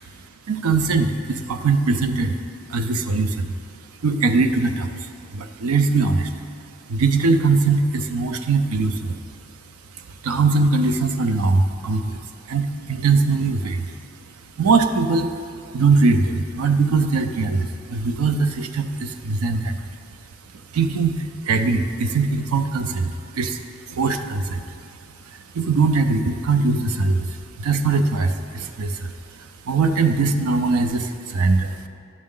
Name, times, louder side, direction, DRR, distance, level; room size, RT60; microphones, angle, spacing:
voice 1, 0.5-2.4 2.7-3.5 4.0-6.3 6.9-9.2 9.9-12.2 12.5-14.0 14.6-19.8 20.5-24.8 25.2-31.8, right 4 dB, 85° right, 8 dB, 0.5 m, -21 dB
9.4 x 6.2 x 3.7 m, 2.4 s
head